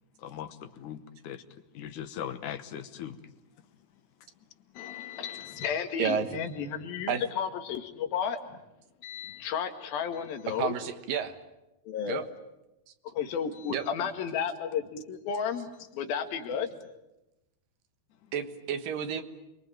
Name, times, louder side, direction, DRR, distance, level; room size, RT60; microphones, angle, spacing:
voice 1, 0.2-3.7 18.2-18.3, left 9 dB, 65° left, 10 dB, 2.4 m, -40 dB
voice 2, 4.8-8.6 9.0-10.7 11.9-12.3 13.1-16.7, left 7 dB, 85° left, 6 dB, 3.6 m, -33 dB
voice 3, 10.6-11.4 12.1-12.2 13.7-13.9 18.3-19.2, right 7 dB, 75° right, 9 dB, 3.0 m, -30 dB
28.5 x 23.0 x 8.9 m, 0.95 s
omnidirectional pair, 4.1 m